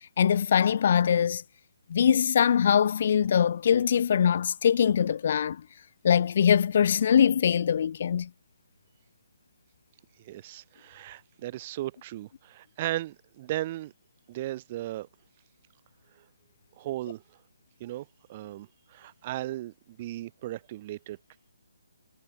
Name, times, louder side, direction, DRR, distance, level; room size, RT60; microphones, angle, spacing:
voice 1, 0.2-1.4 1.9-5.6 6.0-8.3, left 8 dB, 45° left, 0.6 m, -22 dB
voice 2, 10.2-13.9 14.3-15.1 16.8-17.2 17.8-21.2, right 15 dB, 30° right, 0.5 m, -36 dB
hypercardioid pair, 155°, 0 cm